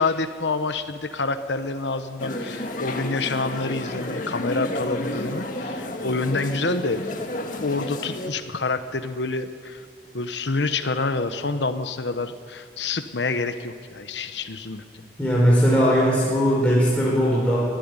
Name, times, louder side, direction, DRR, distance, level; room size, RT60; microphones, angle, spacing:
voice 1, 0.0-7.1 7.6-9.8 10.1-14.8, left 3 dB, 90° left, 9 dB, 1.1 m, -27 dB
sound 1, 2.2-8.3, left 1 dB, 50° left, 1.9 m, -31 dB
voice 2, 15.2-17.6, equal, 10° left, -6 dB, 4.6 m, -19 dB
24.0 x 13.0 x 9.7 m, 2.1 s
head